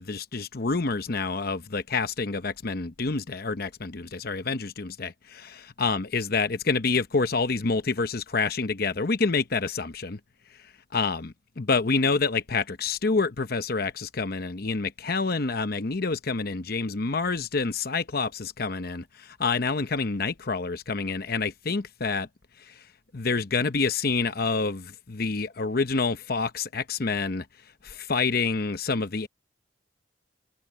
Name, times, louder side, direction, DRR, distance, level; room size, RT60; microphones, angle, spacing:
voice 1, 0.0-10.2 10.9-22.3 22.7-22.8 23.1-27.4 27.8-29.3, left 4 dB, 55° left, 0.9 m, -27 dB
head